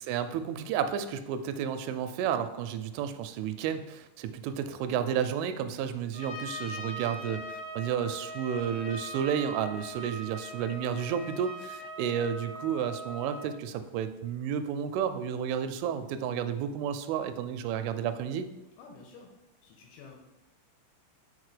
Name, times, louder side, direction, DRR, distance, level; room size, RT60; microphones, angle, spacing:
voice 1, 0.0-18.5, right 8 dB, 85° right, 10 dB, 3.0 m, -32 dB
Trumpet, 6.1-13.5, right 1 dB, 35° left, 1.7 m, -41 dB
voice 2, 18.8-19.3 19.6-20.2, left 4 dB, 80° left, 2 dB, 2.8 m, -50 dB
6.6 x 4.3 x 4.9 m, 0.97 s
omnidirectional pair, 5.5 m